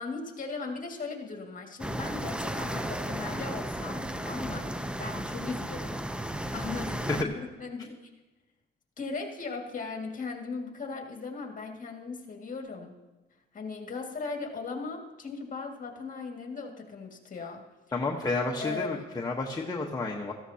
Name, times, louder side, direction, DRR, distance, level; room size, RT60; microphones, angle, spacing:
voice 1, 0.0-5.9 6.5-8.0 9.0-13.0 13.5-17.6 18.6-19.0, left 4 dB, 40° left, 2 dB, 2.1 m, -38 dB
sound 1, 1.8-7.2, right 1 dB, 5° right, 0.6 m, -34 dB
voice 2, 17.9-20.3, left 3 dB, 20° left, -1 dB, 1.2 m, -31 dB
17.0 x 14.0 x 2.9 m, 1.1 s
cardioid pair, 90°, 20 cm